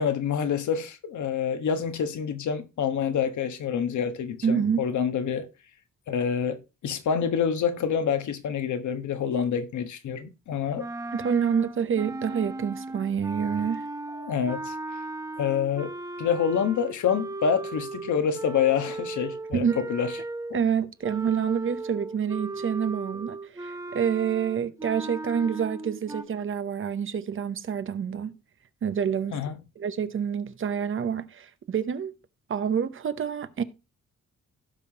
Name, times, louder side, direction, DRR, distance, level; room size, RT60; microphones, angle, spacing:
voice 1, 0.0-5.5 6.1-10.9 14.1-14.7 15.4-20.1 20.5-20.6 29.3-29.6, left 7 dB, 75° left, 1.3 m, -27 dB
voice 2, 4.4-4.8 11.1-13.8 19.5-19.8 20.5-28.4 28.8-29.4 29.8-32.1 32.5-33.6, right 7 dB, 45° right, 0.8 m, -27 dB
sound 1, 10.8-20.6 21.0-26.2, right 2 dB, 10° right, 0.9 m, -37 dB
16.5 x 5.7 x 2.9 m
wide cardioid pair, 165°, 30 cm